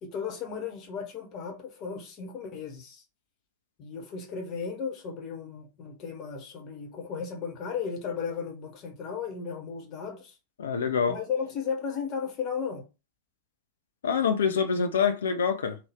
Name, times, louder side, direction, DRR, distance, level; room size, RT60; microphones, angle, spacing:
voice 1, 0.0-3.0 3.8-10.3 11.1-12.9, left 6 dB, 35° left, 1.1 m, -35 dB
voice 2, 10.6-11.2 14.0-15.8, left 6 dB, 65° left, 0.5 m, -25 dB
3.8 x 2.3 x 3.5 m
figure-of-eight pair, 90°, 0 cm